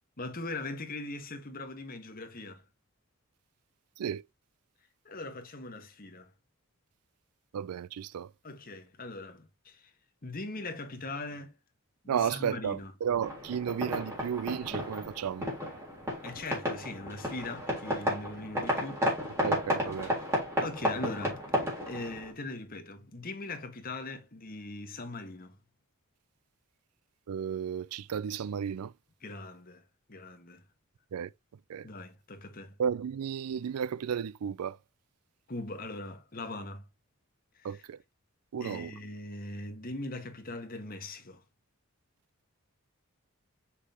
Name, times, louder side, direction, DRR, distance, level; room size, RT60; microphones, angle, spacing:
voice 1, 0.2-2.6 5.0-6.3 8.4-9.9 10.2-11.5 12.0-12.9 16.2-19.1 20.0-20.1 20.6-21.4 21.9-25.6 29.2-29.8 30.1-30.6 31.8-32.7 35.5-36.8 37.6-37.8 38.6-41.4, left 2 dB, 40° left, 1.5 m, -40 dB
voice 2, 7.5-8.3 12.1-15.5 19.4-20.1 27.3-28.9 31.1-31.3 31.7-31.9 32.8-34.8 37.6-38.0 38.5-38.9, right 8 dB, 90° right, 0.4 m, -33 dB
sound 1, 13.2-22.3, equal, 10° right, 3.5 m, -33 dB
6.5 x 5.6 x 2.9 m
head